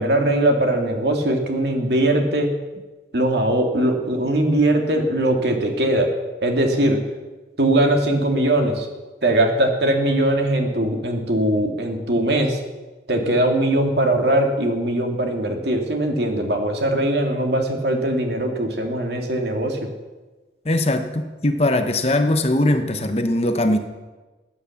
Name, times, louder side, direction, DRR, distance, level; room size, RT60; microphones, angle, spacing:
voice 1, 0.0-2.5 3.1-6.1 6.4-7.0 7.6-8.9 9.2-12.6 13.1-19.9, right 1 dB, 75° right, 3 dB, 2.3 m, -20 dB
voice 2, 20.6-23.8, left 1 dB, 35° left, 7 dB, 1.1 m, -20 dB
15.0 x 9.4 x 7.2 m, 1.2 s
head